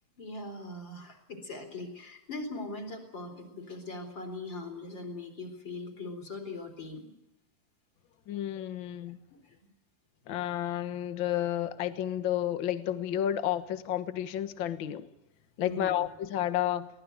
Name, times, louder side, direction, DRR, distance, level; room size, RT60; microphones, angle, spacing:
voice 1, 0.2-7.1 9.4-9.6 15.6-16.0, left 2 dB, 30° left, 5 dB, 4.5 m, -40 dB
voice 2, 8.3-9.2 10.3-15.1 15.6-16.9, left 11 dB, 65° left, 11 dB, 1.2 m, -31 dB
23.5 x 19.0 x 9.3 m, 0.86 s
omnidirectional pair, 4.1 m